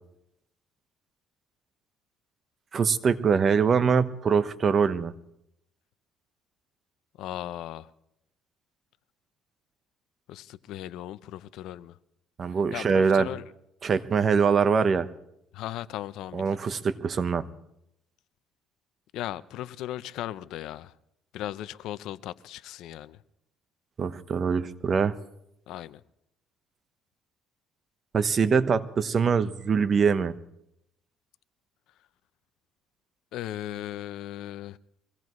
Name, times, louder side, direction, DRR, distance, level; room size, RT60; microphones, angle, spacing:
voice 1, 2.7-5.1 12.4-13.3 13.8-15.1 16.3-17.5 24.0-25.2 28.1-30.3, right 6 dB, 40° right, 12 dB, 1.0 m, -23 dB
voice 2, 7.2-7.9 10.3-12.0 12.5-13.4 15.5-16.6 19.1-20.9 21.3-23.2 25.7-26.0 33.3-34.8, left 13 dB, 75° left, 16 dB, 0.6 m, -37 dB
24.0 x 17.5 x 3.1 m, 0.78 s
cardioid pair, 105°, 0 cm